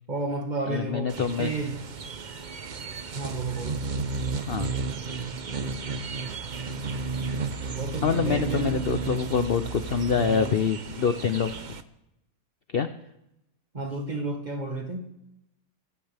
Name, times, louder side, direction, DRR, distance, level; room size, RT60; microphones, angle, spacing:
voice 1, 0.1-1.8 3.1-3.9 7.7-8.8 13.7-15.1, right 2 dB, 25° right, 3 dB, 1.9 m, -32 dB
voice 2, 0.7-1.5 4.4-4.7 8.0-11.8 12.7-12.9, left 6 dB, 55° left, 9 dB, 0.6 m, -26 dB
sound 1, 1.1-11.8, right 4 dB, 45° right, 0.6 m, -33 dB
24.5 x 14.5 x 3.5 m, 0.85 s
omnidirectional pair, 1.8 m